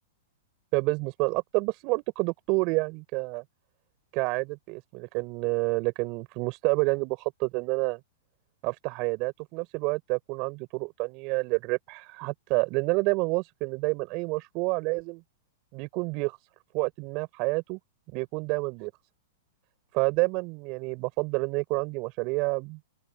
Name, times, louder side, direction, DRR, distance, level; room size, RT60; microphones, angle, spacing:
voice 1, 0.7-3.4 4.1-8.0 8.6-15.2 15.7-16.4 16.7-17.8 18.1-18.9 19.9-22.8, right 27 dB, 45° right, 4.6 m, -28 dB
open air
hypercardioid pair, 110°, 0 cm